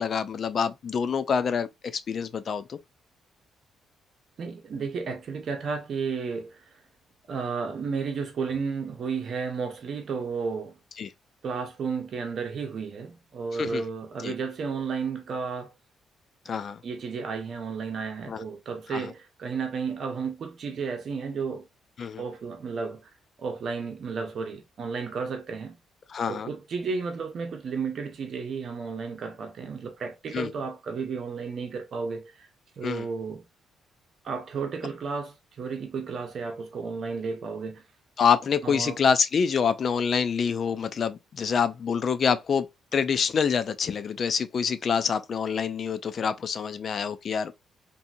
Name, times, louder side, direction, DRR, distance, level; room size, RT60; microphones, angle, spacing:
voice 1, 0.0-2.8 11.0-11.1 13.5-13.8 14.2-14.3 16.5-16.8 18.3-18.4 18.9-19.1 22.0-22.2 26.1-26.5 30.3-30.5 32.8-33.1 38.2-42.7 42.9-47.5, left 6 dB, 50° left, 0.3 m, -26 dB
voice 2, 4.4-6.6 7.3-10.8 11.4-15.7 16.8-21.7 22.2-23.1 23.4-25.8 26.3-32.5 32.8-33.4 34.2-37.8 38.6-39.0, right 5 dB, 55° right, 0.8 m, -33 dB
2.7 x 2.6 x 2.4 m
cardioid pair, 90°, 0 cm